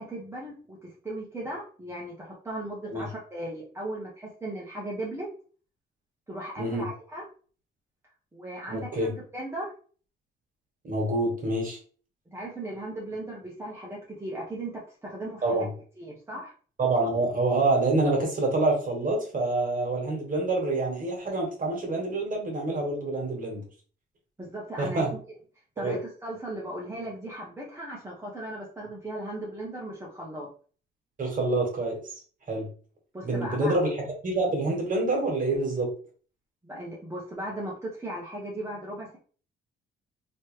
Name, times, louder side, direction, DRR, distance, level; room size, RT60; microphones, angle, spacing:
voice 1, 0.0-5.3 6.3-7.2 8.3-9.7 12.3-15.7 16.0-16.5 24.4-25.1 25.8-30.5 33.1-33.7 36.6-39.2, right 1 dB, 15° right, -5 dB, 1.1 m, -37 dB
voice 2, 6.6-6.9 8.7-9.1 10.8-11.8 15.4-15.7 16.8-23.6 24.8-25.1 25.8-26.0 31.2-32.1 32.5-32.7 33.2-35.9, right 2 dB, 45° right, 0 dB, 1.7 m, -27 dB
3.1 x 3.1 x 3.2 m, 0.42 s
cardioid pair, 90°, 20 cm